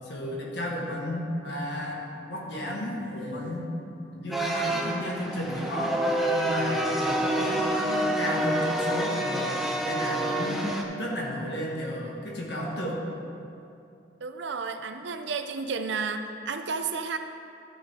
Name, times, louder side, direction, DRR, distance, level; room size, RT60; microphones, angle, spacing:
voice 1, 0.1-3.7 4.1-6.0 6.3-13.1, left 1 dB, 65° left, -3 dB, 1.8 m, -33 dB
sound 1, 4.3-10.8, right 1 dB, ahead, 0.7 m, -27 dB
voice 2, 14.2-17.2, right 4 dB, 75° right, 8 dB, 0.6 m, -32 dB
12.5 x 6.4 x 3.7 m, 2.6 s
head